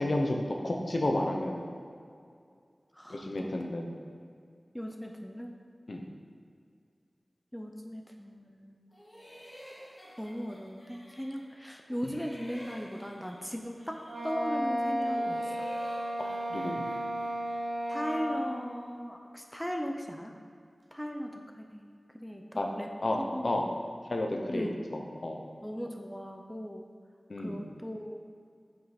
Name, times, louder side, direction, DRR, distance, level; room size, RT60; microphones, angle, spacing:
voice 1, 0.0-1.8 3.1-4.0 5.9-6.0 16.5-16.8 22.6-22.7 23.0-23.2 23.4-23.6 24.1-25.4 27.3-27.6, left 1 dB, 60° left, 1 dB, 0.9 m, -31 dB
voice 2, 2.9-3.7 4.7-5.5 7.5-8.9 10.2-15.5 17.9-20.3 20.9-22.9 23.2-23.6 24.5-24.8 25.6-26.9 27.4-28.2, equal, 5° left, 2 dB, 0.6 m, -38 dB
sound 1, 8.9-11.6 11.9-14.5 14.9-18.6, equal, 35° left, 1.8 m, -51 dB
Wind instrument woodwind instrument, 14.1-18.6, equal, 60° right, 1.3 m, -33 dB
8.0 x 5.6 x 4.3 m, 2.2 s
wide cardioid pair, 65°, 0 cm